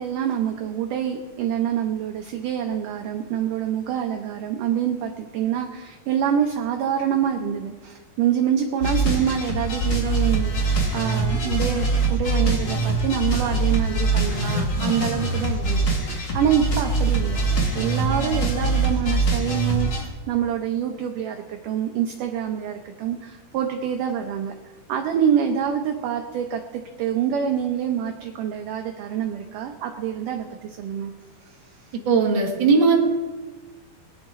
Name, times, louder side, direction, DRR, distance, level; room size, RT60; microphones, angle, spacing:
voice 1, 0.0-17.4 17.8-24.5 24.9-31.1 31.4-32.0, right 9 dB, 75° right, 4 dB, 2.1 m, -26 dB
sound 1, 8.8-20.0, right 2 dB, 40° left, 1.6 m, -23 dB
voice 2, 32.1-33.0, right 4 dB, 40° right, -1 dB, 2.1 m, -18 dB
22.0 x 10.0 x 3.7 m, 1.3 s
omnidirectional pair, 4.4 m